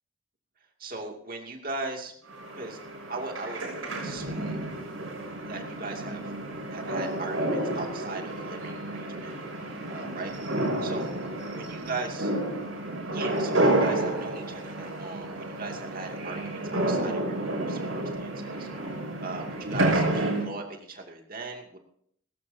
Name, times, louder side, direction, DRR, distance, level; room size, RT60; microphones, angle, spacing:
voice 1, 0.8-2.1 2.5-2.8 3.1-3.7 4.0-4.6 5.4-6.3 6.7-9.3 9.9-10.3 10.8-11.1 11.5-12.3 13.1-18.7 19.2-21.8, right 3 dB, 45° right, 2 dB, 2.5 m, -38 dB
sound 1, 2.3-20.5, right 1 dB, 75° right, 6.2 m, -30 dB
19.0 x 16.5 x 2.8 m, 0.66 s
head